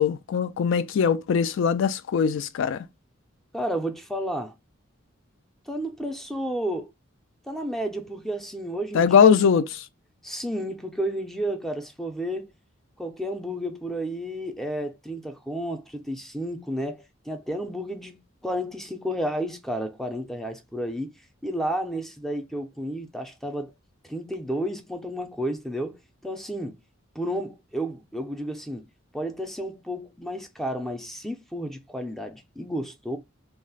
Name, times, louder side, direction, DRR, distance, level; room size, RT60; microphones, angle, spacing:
voice 1, 0.0-2.8 8.9-9.6, left 7 dB, 70° left, 0.3 m, -20 dB
voice 2, 3.5-4.5 5.7-6.9 7.5-9.6 10.2-12.5 13.0-21.1 21.4-23.7 24.1-26.8 27.2-28.8 29.1-33.2, equal, ahead, 0.4 m, -31 dB
2.4 x 2.0 x 3.8 m
head